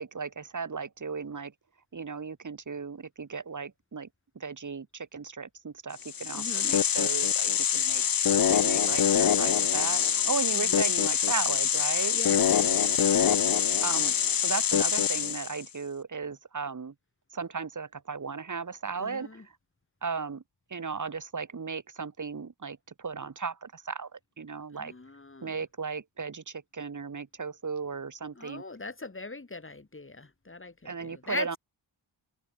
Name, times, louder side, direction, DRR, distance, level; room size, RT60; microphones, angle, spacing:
voice 1, 0.0-1.5 1.9-4.1 4.4-8.0 8.5-12.2 13.8-16.9 17.3-19.4 20.0-20.4 20.7-24.9 25.4-28.6 30.9-31.6, right 5 dB, 40° right, 1.7 m, -36 dB
sound 1, 6.0-15.6, left 8 dB, 45° left, 0.8 m, -25 dB
voice 2, 6.3-6.8 10.5-10.9 12.1-12.9 19.0-19.5 24.7-25.6 28.3-31.6, left 3 dB, 25° left, 4.4 m, -41 dB
wide cardioid pair, 110°, 48 cm